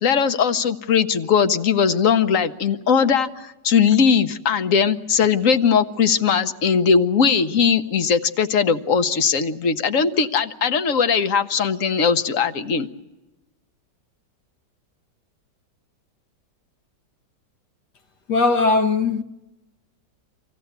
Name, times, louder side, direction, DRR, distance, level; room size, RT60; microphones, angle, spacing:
voice 1, 0.0-12.9, left 6 dB, 55° left, 1.2 m, -19 dB
voice 2, 18.3-19.2, left 3 dB, 70° left, 1.6 m, -19 dB
25.5 x 16.0 x 8.1 m
omnidirectional pair, 1.9 m